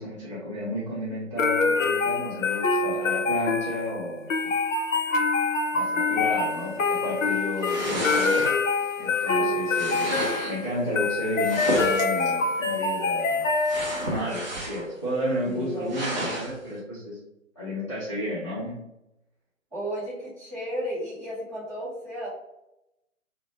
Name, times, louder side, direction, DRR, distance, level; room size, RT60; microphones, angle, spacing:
voice 1, 0.0-4.3 5.7-8.5 9.0-10.2 10.5-13.4 14.1-17.2 17.6-18.8, equal, 25° left, -11 dB, 0.4 m, -32 dB
sound 1, 1.4-14.2, left 4 dB, 75° left, 0.5 m, -25 dB
sound 2, 7.6-8.8 9.7-10.6 11.4-12.3 13.6-15.0 15.3-15.4 15.9-16.5, right 1 dB, 35° right, 0.5 m, -31 dB
voice 2, 15.4-16.2 19.7-22.3, equal, 10° right, -12 dB, 0.9 m, -34 dB
2.4 x 2.1 x 2.8 m, 0.89 s
figure-of-eight pair, 145°, 40 cm